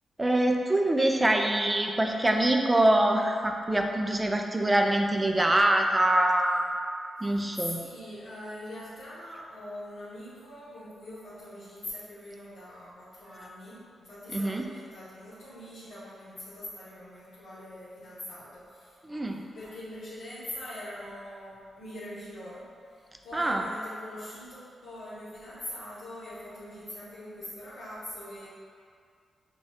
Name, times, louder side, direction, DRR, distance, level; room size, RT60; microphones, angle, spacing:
voice 1, 0.2-6.7 7.2-7.8 14.3-14.7 19.0-19.4 23.3-23.6, right 1 dB, 15° right, 3 dB, 0.3 m, -24 dB
voice 2, 7.2-19.0 19.3-22.7 22.9-28.5, left 1 dB, 85° left, -12 dB, 0.9 m, -43 dB
6.3 x 2.3 x 2.8 m, 2.2 s
wide cardioid pair, 125°, 0 cm